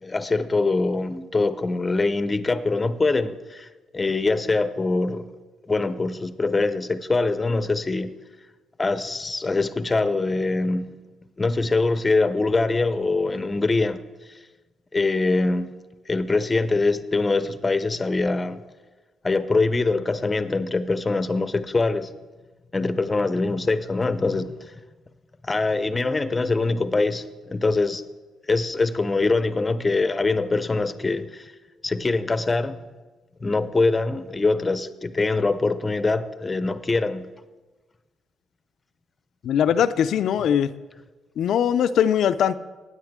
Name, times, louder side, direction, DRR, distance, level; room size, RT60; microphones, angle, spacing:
voice 1, 0.0-3.7 3.9-5.3 5.7-8.1 8.8-10.9 11.4-14.0 14.9-15.7 16.1-18.6 19.2-22.1 22.7-24.7 25.4-28.0 28.5-31.5 31.8-32.8 33.4-37.3, left 3 dB, 25° left, 0.7 m, -23 dB
voice 2, 39.4-40.7 41.4-42.6, left 9 dB, 70° left, 0.4 m, -21 dB
16.5 x 9.5 x 3.6 m
cardioid pair, 90°, 0 cm